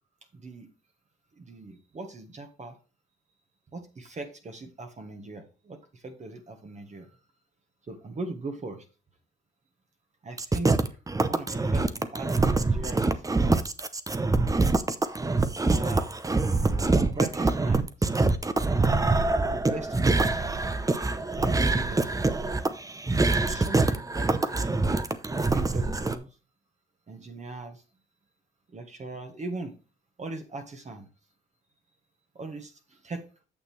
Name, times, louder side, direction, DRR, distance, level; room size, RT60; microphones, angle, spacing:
voice 1, 0.3-0.7 1.4-2.8 3.7-7.1 7.9-8.8 10.2-11.0 11.3-13.2 15.6-16.6 16.9-18.1 19.4-20.3 21.3-22.1 23.4-25.0 25.4-26.3 27.1-27.8 28.7-29.7 30.2-31.1 32.3-33.2, right 3 dB, 35° right, 5 dB, 1.4 m, -39 dB
sound 1, 10.4-26.2, right 3 dB, 15° right, 0.7 m, -25 dB
8.8 x 6.8 x 3.2 m, 0.33 s
cardioid pair, 90°, 20 cm